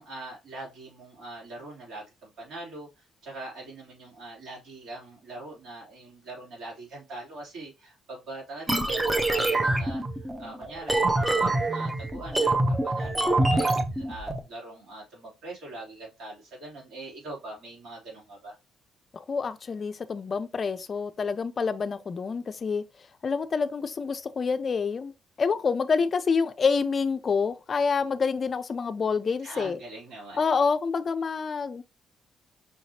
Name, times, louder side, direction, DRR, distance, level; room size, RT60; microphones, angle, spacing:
voice 1, 0.0-18.6 29.4-30.4, right 2 dB, 75° right, 3.0 m, -42 dB
sound 1, 8.7-14.4, right 2 dB, 15° right, 0.7 m, -25 dB
voice 2, 19.1-22.8 23.2-25.1 25.4-29.8 30.4-31.8, left 5 dB, 45° left, 0.4 m, -27 dB
5.6 x 3.0 x 2.8 m
cardioid pair, 90°, 0 cm